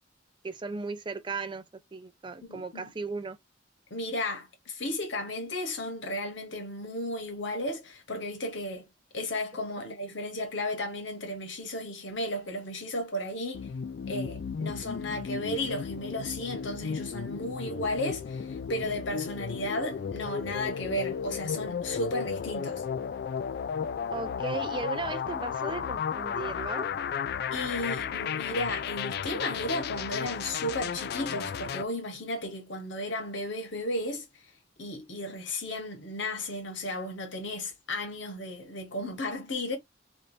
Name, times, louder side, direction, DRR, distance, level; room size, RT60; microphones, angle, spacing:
voice 1, 0.4-1.6 1.9-3.4 24.1-26.9, right 4 dB, 25° right, 0.4 m, -36 dB
voice 2, 2.4-2.9 3.9-8.9 9.1-13.7 14.1-22.8 27.5-34.2 34.8-39.8, left 1 dB, 80° left, 1.3 m, -34 dB
sound 1, 13.5-31.8, left 7 dB, 55° left, 0.3 m, -34 dB
3.3 x 2.6 x 2.7 m
head